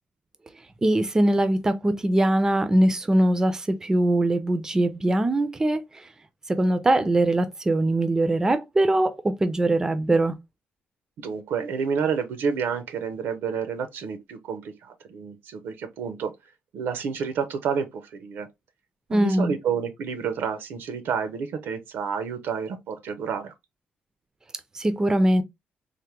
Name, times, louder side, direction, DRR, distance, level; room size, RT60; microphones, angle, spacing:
voice 1, 0.8-5.8 6.5-10.3 19.1-19.5 24.8-25.4, right 1 dB, 15° right, 0.4 m, -22 dB
voice 2, 11.2-16.3 16.7-18.5 19.1-23.5, right 6 dB, 75° right, 0.5 m, -29 dB
3.3 x 2.1 x 2.9 m
cardioid pair, 135°, 4 cm